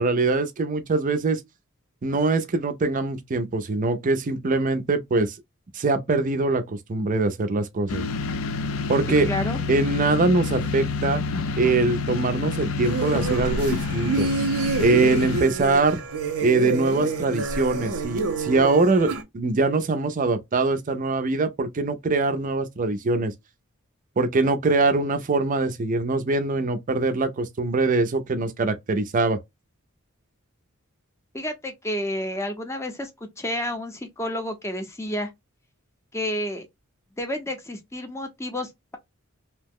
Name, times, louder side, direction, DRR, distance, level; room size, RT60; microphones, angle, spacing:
voice 1, 0.0-1.4 2.0-5.3 5.7-8.0 8.9-9.3 9.7-11.2 11.6-14.3 14.8-16.0 16.4-23.3 24.2-29.4, right 3 dB, 40° right, 0.5 m, -23 dB
sound 1, 7.9-15.4, left 4 dB, 65° left, 0.4 m, -28 dB
voice 2, 9.3-9.6 31.3-33.1 33.4-35.3 36.1-36.7 37.2-39.0, left 1 dB, 15° left, 0.6 m, -30 dB
sound 2, 12.8-19.2, right 3 dB, 90° right, 0.7 m, -28 dB
2.8 x 2.1 x 3.5 m
head